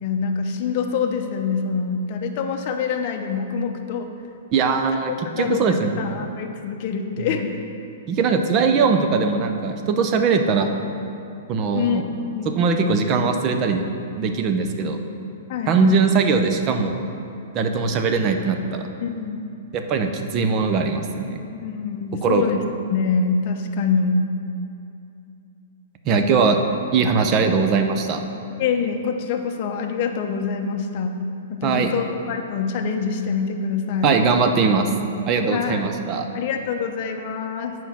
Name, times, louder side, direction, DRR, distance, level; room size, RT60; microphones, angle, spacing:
voice 1, 0.0-4.1 5.3-7.6 11.7-12.0 12.3-12.6 15.5-16.0 19.0-19.5 21.4-22.6 22.9-24.2 28.6-31.2 31.5-34.1 35.5-35.9 36.3-37.8, left 5 dB, 40° left, 4 dB, 0.7 m, -25 dB
voice 2, 4.5-5.1 5.4-6.2 8.1-10.7 11.5-12.0 12.5-13.8 14.2-15.0 15.7-17.0 17.5-18.9 19.7-21.4 22.2-22.5 26.0-26.6 26.9-28.2 31.6-31.9 34.0-34.9 35.3-36.3, right 5 dB, 30° right, 6 dB, 0.5 m, -20 dB
8.3 x 4.5 x 5.8 m, 2.7 s
hypercardioid pair, 155°, 0 cm